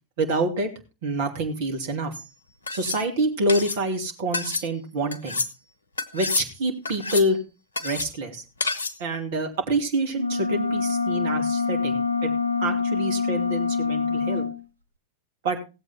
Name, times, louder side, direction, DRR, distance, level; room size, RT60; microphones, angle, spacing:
voice 1, 0.2-0.7 1.0-2.1 2.7-5.4 6.1-7.4 7.8-8.4 9.0-12.3 12.6-14.5 15.4-15.6, right 1 dB, 55° right, 4 dB, 2.7 m, -27 dB
sound 1, 2.1-2.3 2.7-3.0 3.5-3.8 4.3-4.7 5.1-5.5 6.0-6.5 6.9-7.3 7.8-8.1 8.6-9.0, left 3 dB, 75° left, 1.0 m, -29 dB
sound 2, 10.1-14.6, left 4 dB, 80° right, 1.0 m, -25 dB
17.0 x 7.9 x 4.3 m, 0.30 s
figure-of-eight pair, 90°, 0 cm